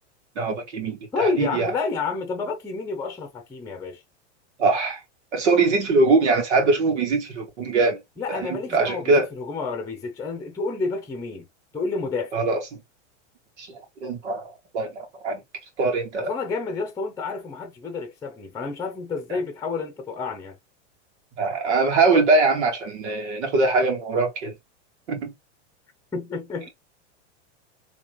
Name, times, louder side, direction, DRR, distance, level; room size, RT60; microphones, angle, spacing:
voice 1, 0.4-1.7 4.6-5.0 5.3-8.0 8.3-9.3 12.3-12.8 13.6-13.7 14.0-15.4 15.8-16.3 19.3-19.4 21.4-24.5 25.1-25.3, right 3 dB, 75° right, 2.5 m, -22 dB
voice 2, 1.1-4.0 8.2-11.5 11.7-12.4 16.2-20.6 26.1-26.7, left 4 dB, 10° left, 0.9 m, -29 dB
3.6 x 3.6 x 3.2 m
supercardioid pair, 130°, 35 cm